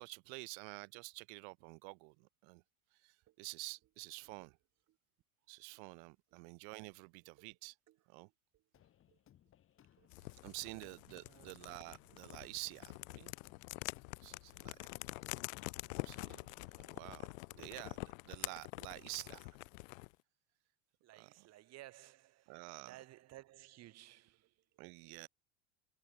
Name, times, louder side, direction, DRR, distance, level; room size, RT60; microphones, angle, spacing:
voice 1, 0.0-2.6 3.0-3.1 3.4-4.5 5.5-7.7 8.1-8.3 10.4-13.3 14.2-14.9 16.0-16.4 16.9-17.3 17.6-18.0 18.2-19.5 21.2-21.3 22.5-22.9 24.8-25.3, right 40 dB or more, 55° right, 1.0 m, -49 dB
voice 2, 6.3-6.6 7.3-7.5 7.9-8.6 9.1-9.2 10.0-10.8 11.1-11.8 12.1-12.2 17.5-17.8 21.0-24.7, right 15 dB, 40° right, 3.4 m, -59 dB
sound 1, 8.7-17.1, left 11 dB, 30° left, 4.2 m, -68 dB
sound 2, 10.1-20.1, left 25 dB, 70° left, 1.1 m, -47 dB
supercardioid pair, 145°, 41 cm